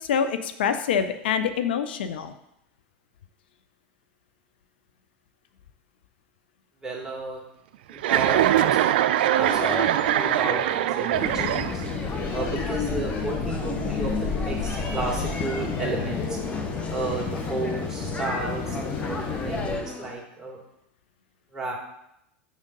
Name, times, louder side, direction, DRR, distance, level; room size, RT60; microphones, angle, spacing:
voice 1, 0.0-2.3, left 7 dB, 85° left, 10 dB, 0.4 m, -25 dB
voice 2, 6.8-7.4 7.9-9.1 9.3-11.8 12.3-16.4 16.9-20.6 21.5-21.7, right 3 dB, 10° right, -3 dB, 2.2 m, -33 dB
Chuckle chortle, 8.0-12.1, right 12 dB, 80° right, 0.3 m, -22 dB
sound 1, 9.4-20.1, left 2 dB, 20° left, 1.0 m, -36 dB
sound 2, 11.1-19.8, left 4 dB, 45° left, 1.2 m, -30 dB
6.2 x 3.7 x 5.3 m, 0.81 s
hypercardioid pair, 95°, 5 cm